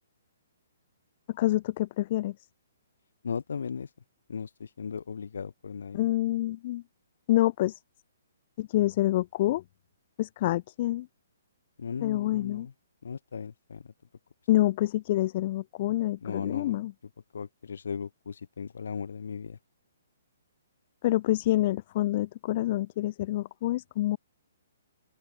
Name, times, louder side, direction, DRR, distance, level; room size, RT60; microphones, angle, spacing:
voice 1, 1.3-2.3 5.9-6.8 7.3-7.7 8.6-9.6 10.2-11.1 12.0-12.7 14.5-16.9 21.0-24.2, left 15 dB, 40° left, 2.4 m, -27 dB
voice 2, 3.2-3.9 4.3-6.0 11.8-12.7 13.0-13.9 16.2-16.8 17.3-19.6, left 6 dB, 65° left, 2.2 m, -37 dB
open air
figure-of-eight pair, 125°, 0 cm